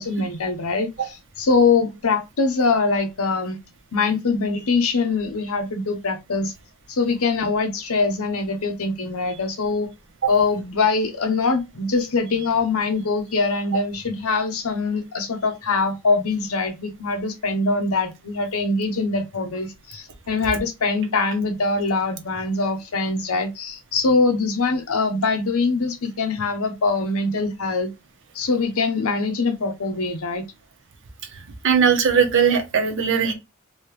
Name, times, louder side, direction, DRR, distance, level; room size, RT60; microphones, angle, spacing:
voice 1, 0.0-3.6 3.9-6.5 6.9-9.9 10.3-27.9 28.3-30.5, left 3 dB, 70° left, 0.8 m, -23 dB
voice 2, 31.6-33.3, right 6 dB, 55° right, 0.8 m, -19 dB
3.2 x 2.8 x 3.2 m
head